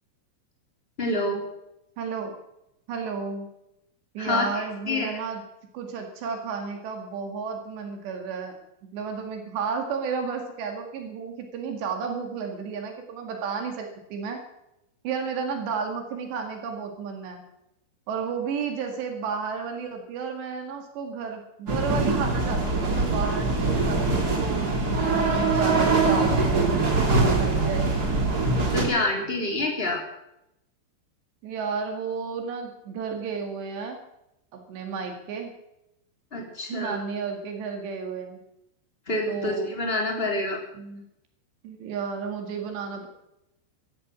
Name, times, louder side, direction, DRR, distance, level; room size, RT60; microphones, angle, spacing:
voice 1, 1.0-1.4 4.2-5.2 28.7-30.0 36.3-37.0 39.1-40.6, left 2 dB, 15° left, 1 dB, 2.7 m, -27 dB
voice 2, 2.0-2.4 2.9-3.5 4.2-5.4 5.7-8.6 8.9-14.4 15.0-17.4 18.1-24.6 24.9-27.9 31.4-34.0 34.5-35.5 36.7-38.4 39.3-39.7 40.8-41.0 41.6-43.1, right 5 dB, 70° right, 4 dB, 4.1 m, -32 dB
sound 1, 21.7-28.8, right 3 dB, 25° right, 2.4 m, -23 dB
16.0 x 14.0 x 6.2 m, 0.83 s
omnidirectional pair, 5.3 m